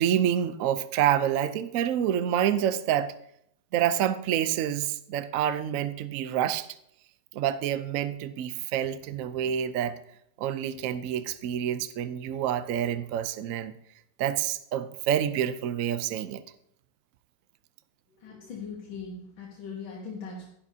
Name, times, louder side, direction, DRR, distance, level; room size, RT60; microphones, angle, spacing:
voice 1, 0.0-3.1 3.7-6.7 7.3-10.0 10.4-13.8 14.2-16.4, right 10 dB, 80° right, 11 dB, 0.7 m, -27 dB
voice 2, 18.1-20.5, left 5 dB, 85° left, -3 dB, 2.2 m, -40 dB
11.5 x 11.0 x 2.8 m, 0.72 s
omnidirectional pair, 2.1 m